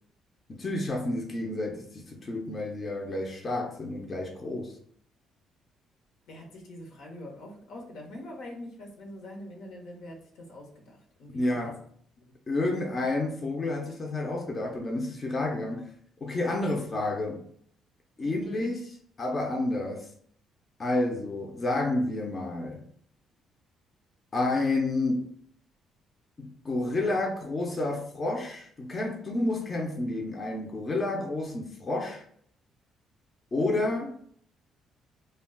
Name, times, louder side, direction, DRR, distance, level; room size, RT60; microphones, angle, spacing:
voice 1, 0.5-4.8 11.3-11.8 12.5-15.9 16.2-17.5 18.2-18.8 19.2-20.1 20.8-22.9 24.3-25.3 26.4-32.2 33.5-34.1, left 2 dB, 30° left, 0.5 m, -30 dB
voice 2, 6.3-11.7 12.2-12.3 18.2-18.7, left 1 dB, 85° left, 0.8 m, -44 dB
2.3 x 2.2 x 3.5 m
cardioid pair, 125°, 0 cm